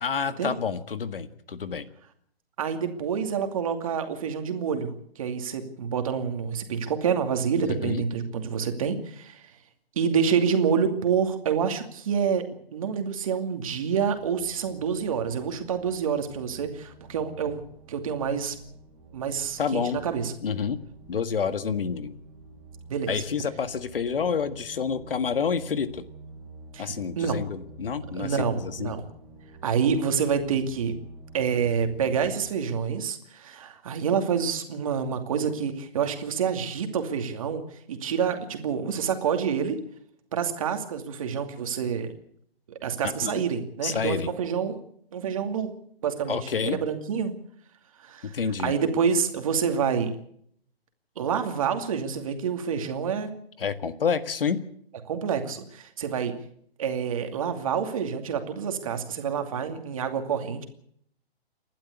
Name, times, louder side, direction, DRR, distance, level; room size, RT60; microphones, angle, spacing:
voice 1, 0.0-1.9 7.6-8.0 19.6-20.0 20.4-20.8 21.1-22.1 23.1-26.1 26.8-29.0 43.0-43.4 43.8-44.3 46.3-46.8 48.2-48.7 53.6-54.6, left 6 dB, 60° left, 12 dB, 1.8 m, -28 dB
voice 2, 2.6-9.5 10.0-12.4 12.7-17.6 17.9-18.6 19.1-20.3 22.9-23.2 26.7-27.4 28.2-29.0 29.6-30.9 31.3-37.6 37.9-39.8 40.3-42.1 42.7-44.8 45.1-45.7 46.0-47.3 48.0-50.1 51.2-53.3 55.1-56.3 56.8-60.6, right 7 dB, 35° right, 6 dB, 2.6 m, -27 dB
sound 1, 13.9-32.5, right 3 dB, 15° right, 4.0 m, -47 dB
29.0 x 12.0 x 8.2 m, 0.67 s
hypercardioid pair, 170°, 31 cm